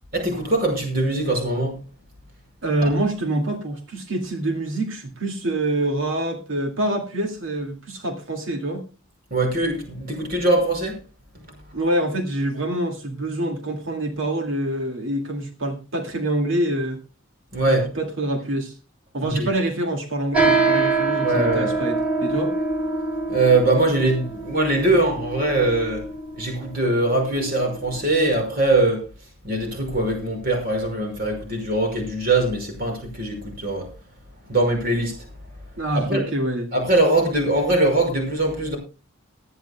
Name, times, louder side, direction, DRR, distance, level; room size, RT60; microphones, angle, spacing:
voice 1, 0.1-1.8 2.8-2.9 9.3-11.0 17.5-17.9 19.2-19.5 21.2-21.7 23.3-26.0 26.4-29.0 29.4-33.9 34.5-35.2 35.9-36.2 36.7-38.8, right 2 dB, 45° right, 5.6 m, -22 dB
voice 2, 2.6-8.8 11.7-17.0 17.7-18.7 19.1-22.5 35.8-36.7, right 1 dB, 70° right, 2.2 m, -26 dB
sound 1, 20.3-28.1, right 3 dB, 5° right, 5.8 m, -25 dB
19.5 x 13.5 x 2.3 m
head